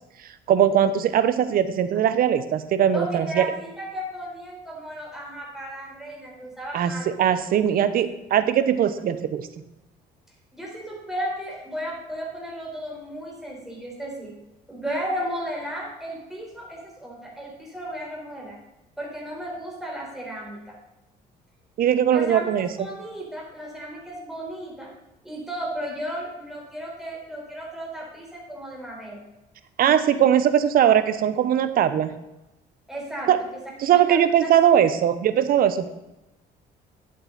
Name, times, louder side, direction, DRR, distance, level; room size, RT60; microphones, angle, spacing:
voice 1, 0.5-3.5 6.7-9.5 21.8-22.7 29.8-32.1 33.3-33.4 33.8-35.9, right 9 dB, 60° right, 12 dB, 0.9 m, -20 dB
voice 2, 2.9-7.1 10.6-14.4 14.7-18.6 19.0-20.8 22.1-24.9 25.2-29.2 32.9-33.3 33.9-34.5, equal, ahead, -3 dB, 4.0 m, -34 dB
11.0 x 7.8 x 4.0 m, 0.97 s
cardioid pair, 110°, 17 cm